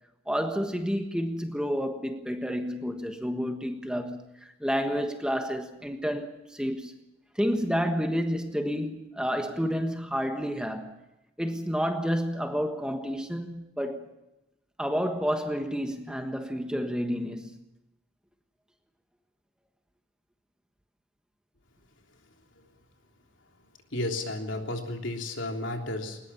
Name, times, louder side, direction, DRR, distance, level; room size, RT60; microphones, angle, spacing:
voice 1, 0.3-6.9 7.3-10.9 11.4-14.1 14.8-17.6, equal, 5° right, 1.4 m, -30 dB
voice 2, 23.9-26.2, left 1 dB, 70° left, 3.4 m, -32 dB
20.5 x 20.0 x 7.1 m
head